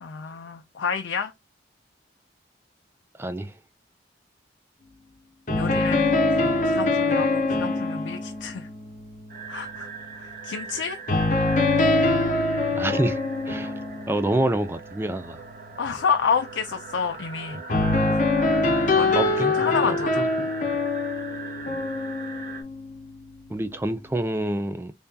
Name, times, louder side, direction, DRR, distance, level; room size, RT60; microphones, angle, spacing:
voice 1, 0.0-1.3 5.5-8.7 9.5-9.9 10.2-11.0 15.8-17.6 18.9-19.3 19.6-20.2, left 6 dB, 80° left, 0.5 m, -29 dB
voice 2, 3.1-3.6 12.7-13.2 13.5-13.8 14.1-15.4 17.5-17.6 19.1-20.5 23.5-24.9, right 1 dB, 10° right, 0.3 m, -27 dB
sound 1, 5.5-10.3 11.1-14.8 17.7-23.2, left 2 dB, 40° left, 0.8 m, -24 dB
sound 2, 9.3-22.6, right 5 dB, 45° right, 0.8 m, -40 dB
3.4 x 2.7 x 3.6 m
head